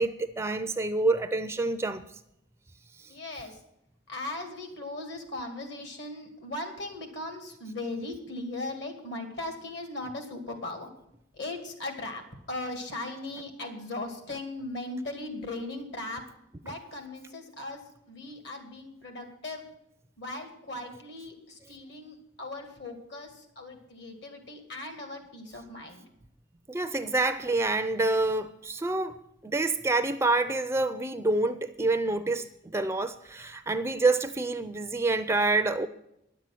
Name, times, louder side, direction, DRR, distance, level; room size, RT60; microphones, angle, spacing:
voice 1, 0.0-2.0 3.0-3.1 26.7-29.2 29.4-35.9, right 2 dB, 15° right, 0.4 m, -27 dB
voice 2, 3.1-3.6 4.1-10.9 11.3-12.2 12.5-16.2 16.6-19.6 20.2-26.0, left 2 dB, 60° left, 2.3 m, -38 dB
10.5 x 7.5 x 9.0 m
head